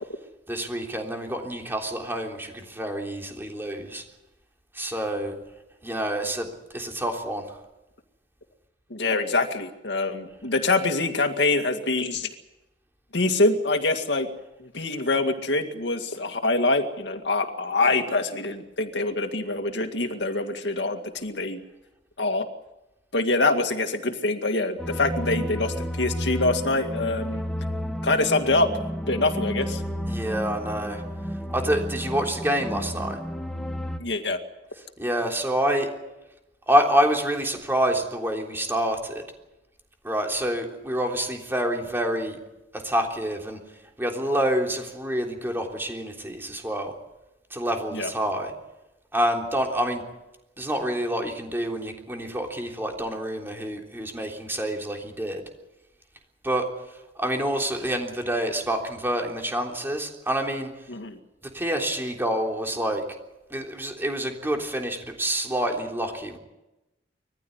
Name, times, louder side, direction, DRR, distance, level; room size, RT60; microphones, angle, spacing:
voice 1, 0.5-4.0 4.7-5.3 5.8-6.5 6.7-7.6 30.1-31.0 31.5-33.2 35.0-35.9 36.7-39.2 40.0-42.4 42.8-43.6 44.0-46.9 47.5-48.5 49.1-50.0 50.6-55.4 56.4-56.6 57.2-60.7 61.5-63.0 63.5-66.4, right 1 dB, 15° right, 1 dB, 3.5 m, -27 dB
voice 2, 8.9-12.3 13.1-14.3 14.6-21.6 22.2-22.5 23.1-27.4 28.0-28.7 29.1-29.8 34.0-34.4 47.9-48.1 60.9-61.2, left 2 dB, 70° left, 6 dB, 2.1 m, -25 dB
sound 1, 24.8-34.0, equal, 5° left, 1.5 m, -31 dB
21.5 x 15.0 x 9.6 m, 0.97 s
head